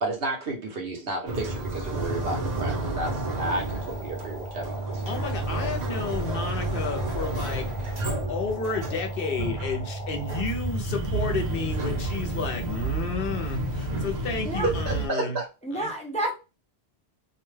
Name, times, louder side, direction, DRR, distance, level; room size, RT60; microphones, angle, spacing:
voice 1, 0.0-5.0 14.6-15.5, right 2 dB, 70° right, 1.0 m, -31 dB
sound 1, 1.3-15.1, right 2 dB, 45° right, 0.8 m, -30 dB
sound 2, 2.5-10.4, left 2 dB, 30° left, 0.9 m, -41 dB
voice 2, 5.1-15.4 15.8-15.9, left 5 dB, 65° left, 0.9 m, -32 dB
voice 3, 15.6-16.3, right 1 dB, 10° left, 0.4 m, -29 dB
2.6 x 2.2 x 3.2 m
omnidirectional pair, 1.0 m